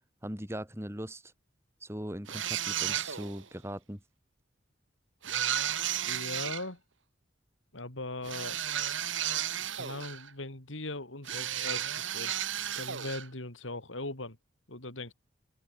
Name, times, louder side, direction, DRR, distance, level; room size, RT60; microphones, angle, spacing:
voice 1, 0.2-1.3 1.8-4.0, equal, 15° right, 4.1 m, -39 dB
sound 1, 2.3-3.4 5.2-6.6 8.2-10.3 11.3-13.3, right 10 dB, 85° right, 2.2 m, -33 dB
voice 2, 6.0-6.8 7.7-8.6 9.7-12.3 12.8-14.4 14.7-15.1, left 2 dB, 85° left, 4.4 m, -39 dB
head